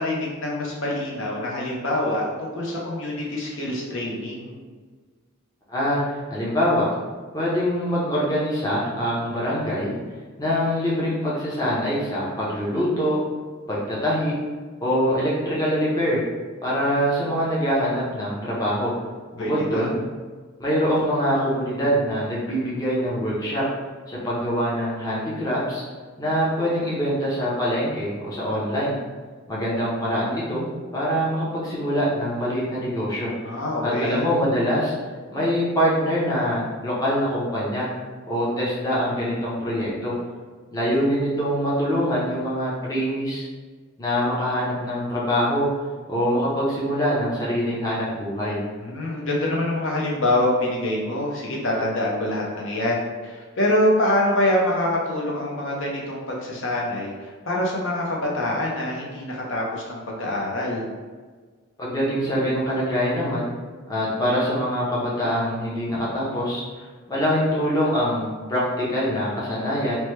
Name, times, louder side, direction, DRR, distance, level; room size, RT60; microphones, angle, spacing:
voice 1, 0.0-4.6 19.4-19.9 33.4-34.2 48.8-60.9, left 1 dB, 65° left, -3 dB, 0.6 m, -25 dB
voice 2, 5.7-6.9 7.3-9.9 10.4-13.2 13.7-14.3 14.8-16.2 16.6-18.9 19.3-20.0 20.6-23.6 24.1-25.8 26.2-29.0 29.5-30.7 30.9-33.5 33.8-34.9 35.3-37.9 38.3-40.1 40.7-43.4 44.0-45.7 46.1-48.6 61.8-63.5 63.9-70.0, equal, 15° left, -7 dB, 0.6 m, -24 dB
2.9 x 2.1 x 3.1 m, 1.5 s
head